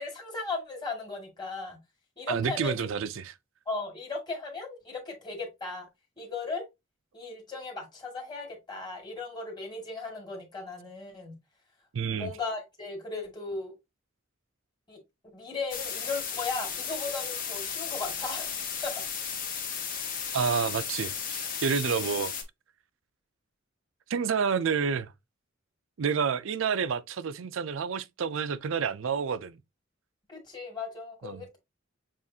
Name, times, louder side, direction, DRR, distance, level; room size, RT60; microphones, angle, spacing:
voice 1, 0.0-1.8 2.2-2.9 3.7-5.9 6.2-6.6 7.1-11.3 12.1-13.7 14.9-15.0 15.3-19.0 30.3-31.6, left 3 dB, 20° left, 2.0 m, -37 dB
voice 2, 2.3-3.3 11.9-12.3 20.3-22.3 24.1-25.1 26.0-29.6 31.2-31.5, right 6 dB, 75° right, 0.4 m, -29 dB
sound 1, 15.7-22.4, left 7 dB, 45° left, 1.0 m, -34 dB
7.2 x 2.5 x 2.7 m
head